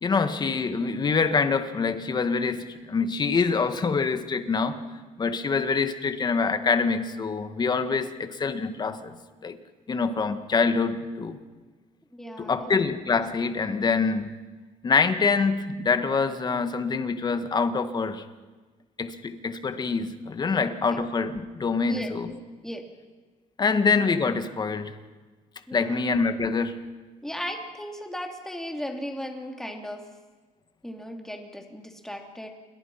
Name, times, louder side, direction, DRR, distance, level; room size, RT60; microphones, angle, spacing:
voice 1, 0.0-4.8 5.2-9.2 9.4-9.6 9.9-11.4 12.4-14.3 14.8-18.2 19.0-22.3 23.6-24.9 25.7-26.9, left 4 dB, 30° left, 9 dB, 1.7 m, -25 dB
voice 2, 12.1-12.7 20.8-21.0 21.9-22.1 22.6-22.8 25.7-26.0 27.2-30.0 30.8-32.5, equal, 5° left, 3 dB, 3.2 m, -36 dB
28.5 x 22.5 x 5.8 m, 1.3 s
cardioid pair, 120°, 14 cm